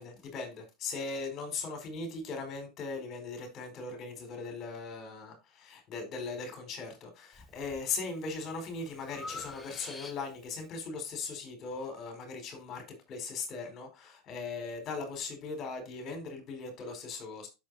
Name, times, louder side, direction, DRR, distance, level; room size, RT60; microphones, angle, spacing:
voice 1, 0.0-17.5, left 4 dB, 35° left, 4.8 m, -39 dB
Breathing, 7.3-7.8 8.3-10.5, left 2 dB, 15° left, 1.3 m, -46 dB
10.5 x 7.6 x 2.7 m
figure-of-eight pair, 75°, 0 cm